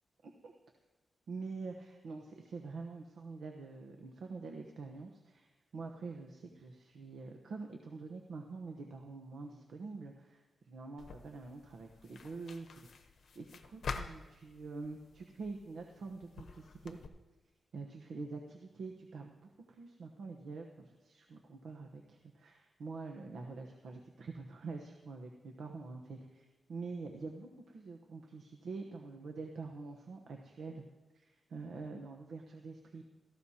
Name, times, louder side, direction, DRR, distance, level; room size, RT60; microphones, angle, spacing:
voice 1, 0.2-0.5 1.3-13.1 13.3-17.0 17.7-30.8 31.1-33.0, right 4 dB, 85° right, 2 dB, 1.0 m, -46 dB
sound 1, 11.0-17.1, left 4 dB, 70° left, 0.9 m, -47 dB
17.5 x 14.5 x 2.9 m, 1.1 s
wide cardioid pair, 130°, 0 cm